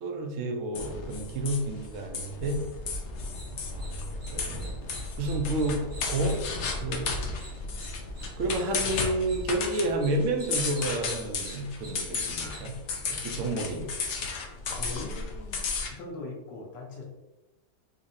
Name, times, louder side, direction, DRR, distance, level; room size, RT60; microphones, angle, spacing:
voice 1, 0.0-2.6 3.7-5.8 6.1-6.5 6.8-7.2 8.4-12.7 13.1-13.9, right 1 dB, 70° right, 3 dB, 0.8 m, -30 dB
sound 1, 0.7-15.9, left 4 dB, 70° left, 0.6 m, -34 dB
sound 2, 3.3-12.7, right 2 dB, 90° right, 1.8 m, -50 dB
voice 2, 14.8-17.0, left 3 dB, 85° left, -3 dB, 1.4 m, -41 dB
4.0 x 2.8 x 2.6 m, 1.0 s
omnidirectional pair, 1.8 m